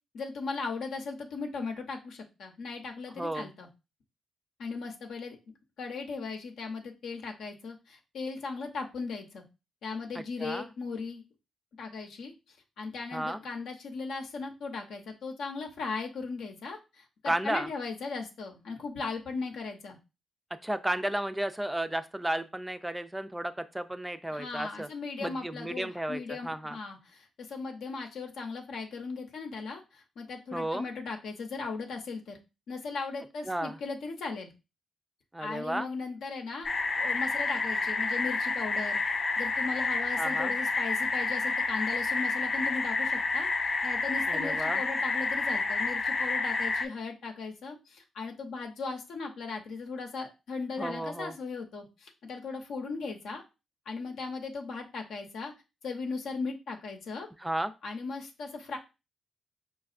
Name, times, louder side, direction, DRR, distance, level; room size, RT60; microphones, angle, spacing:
voice 1, 0.1-3.7 4.6-5.4 5.8-9.4 9.8-11.2 11.8-12.3 12.8-20.0 24.3-32.4 32.7-34.5 35.4-36.7 37.0-39.0 39.4-53.4 53.9-55.5 55.8-57.3 57.8-58.8, left 4 dB, 75° left, 2 dB, 0.7 m, -37 dB
voice 2, 3.2-3.5 10.1-10.7 13.1-13.4 17.3-17.7 20.6-24.9 25.2-26.8 30.5-30.8 33.5-33.8 35.3-35.9 40.2-40.5 44.3-44.8 50.8-51.3 57.4-57.7, right 1 dB, 10° right, 10 dB, 0.3 m, -33 dB
sound 1, 36.6-46.9, left 3 dB, 45° left, 0.5 m, -29 dB
5.1 x 2.3 x 2.4 m, 0.27 s
supercardioid pair, 65°, 0 cm